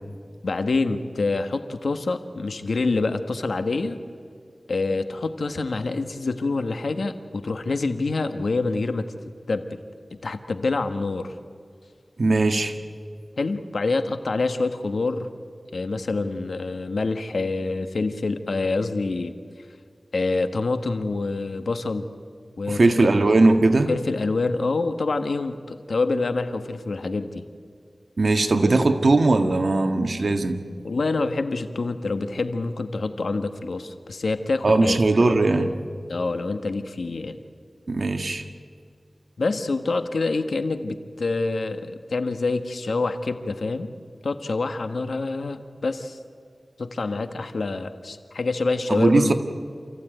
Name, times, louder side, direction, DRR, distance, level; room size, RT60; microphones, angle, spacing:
voice 1, 0.4-4.0 4.7-9.0 9.5-9.8 10.2-11.3 13.4-15.3 15.7-19.4 20.1-22.1 22.6-23.1 23.9-27.4 30.8-35.0 36.1-37.4 39.4-43.9 44.2-46.2 46.8-49.3, left 3 dB, 80° left, 8 dB, 1.4 m, -26 dB
voice 2, 12.2-12.7 22.7-23.9 28.2-30.6 34.6-35.7 37.9-38.4 48.9-49.3, right 2 dB, 65° right, 6 dB, 1.7 m, -19 dB
28.0 x 15.0 x 9.3 m, 2.2 s
wide cardioid pair, 65°, 0 cm